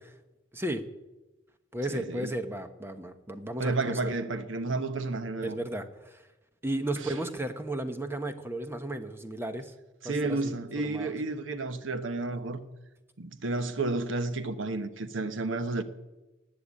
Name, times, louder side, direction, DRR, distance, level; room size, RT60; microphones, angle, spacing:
voice 1, 0.5-0.8 1.7-4.1 5.4-6.2 6.6-9.7 10.0-10.5 10.8-11.1, right 1 dB, 15° right, 1.0 m, -34 dB
voice 2, 1.9-2.3 3.6-5.6 7.0-7.1 10.0-12.6 13.2-15.8, right 3 dB, 90° right, 1.1 m, -31 dB
18.5 x 6.9 x 8.6 m
head